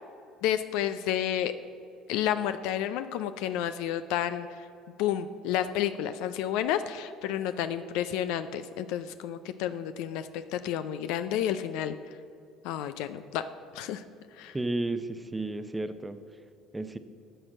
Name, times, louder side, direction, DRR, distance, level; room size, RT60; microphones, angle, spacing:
voice 1, 0.4-1.5 2.1-4.7 5.0-11.9 12.6-13.4 13.7-14.0 14.4-14.5, left 10 dB, 80° left, 11 dB, 0.4 m, -30 dB
voice 2, 14.5-16.2 16.7-17.0, right 2 dB, 15° right, 10 dB, 0.7 m, -32 dB
12.5 x 4.6 x 7.4 m, 2.5 s
supercardioid pair, 90°, 0 cm